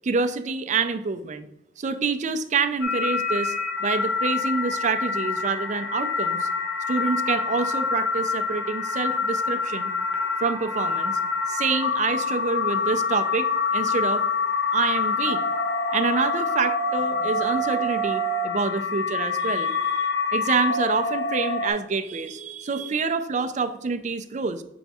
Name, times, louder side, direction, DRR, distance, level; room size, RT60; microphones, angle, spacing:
voice 1, 0.0-1.5 1.8-3.5 3.8-6.5 6.9-9.9 10.4-11.2 11.5-14.2 14.7-15.4 15.9-24.6, right 4 dB, 40° right, 10 dB, 0.4 m, -27 dB
sound 1, 2.8-21.7, left 4 dB, 80° left, 0.9 m, -26 dB
7.1 x 3.4 x 4.1 m, 0.88 s
head